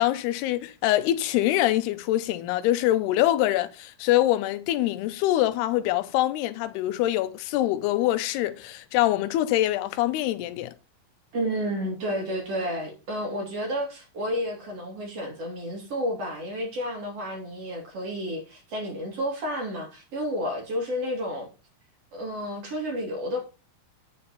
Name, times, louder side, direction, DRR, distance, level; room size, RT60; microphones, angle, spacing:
voice 1, 0.0-10.7, left 14 dB, 90° left, 2.8 m, -24 dB
voice 2, 11.3-21.5 22.1-23.4, equal, 45° right, 3.1 m, -31 dB
8.6 x 7.0 x 4.0 m
omnidirectional pair, 4.5 m